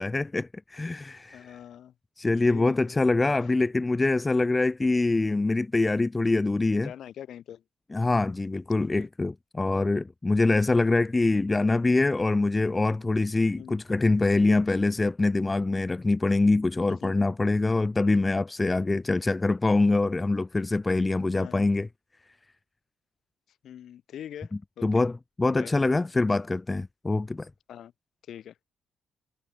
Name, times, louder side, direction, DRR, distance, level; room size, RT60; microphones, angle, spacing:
voice 1, 0.0-1.5 2.2-6.9 7.9-21.9 24.8-25.1 25.4-27.5, left 2 dB, 20° left, 0.6 m, -24 dB
voice 2, 1.3-1.9 2.5-3.0 3.4-3.5 6.8-7.6 8.8-9.1 13.6-13.8 16.9-17.1 21.3-21.7 23.6-25.0 25.5-25.7 27.7-27.9 28.3-28.6, left 10 dB, 65° left, 6.5 m, -43 dB
cardioid pair, 90°, 0 cm